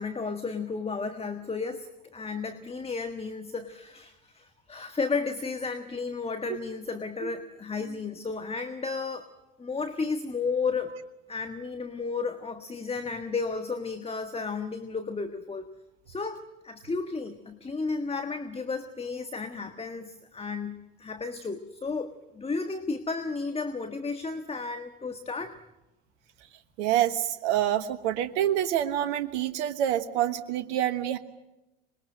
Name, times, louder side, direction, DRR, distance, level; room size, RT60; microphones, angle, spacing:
voice 1, 0.0-9.3 9.6-10.9 11.3-15.7 16.1-25.6, left 4 dB, 15° left, 8 dB, 1.5 m, -33 dB
voice 2, 26.8-31.2, right 11 dB, 65° right, 10 dB, 1.3 m, -27 dB
25.5 x 22.0 x 7.8 m, 0.98 s
hypercardioid pair, 80°, 38 cm